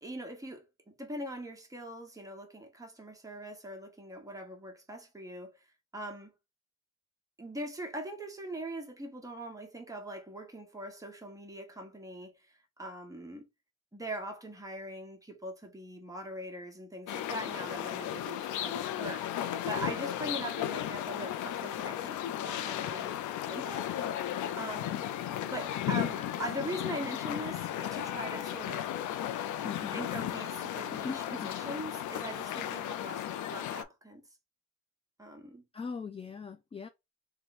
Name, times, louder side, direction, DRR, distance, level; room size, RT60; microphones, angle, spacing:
voice 1, 0.0-6.3 7.4-13.5 13.9-23.1 23.5-23.9 24.6-25.0 25.4-28.9 29.9-34.2 35.2-35.6, right 1 dB, 10° right, 1.1 m, -41 dB
sound 1, 17.1-33.8, left 11 dB, 75° left, 0.5 m, -35 dB
voice 2, 29.6-30.0 30.9-31.6 35.7-36.9, left 5 dB, 20° left, 0.4 m, -40 dB
3.4 x 2.2 x 4.1 m
cardioid pair, 90°, 30 cm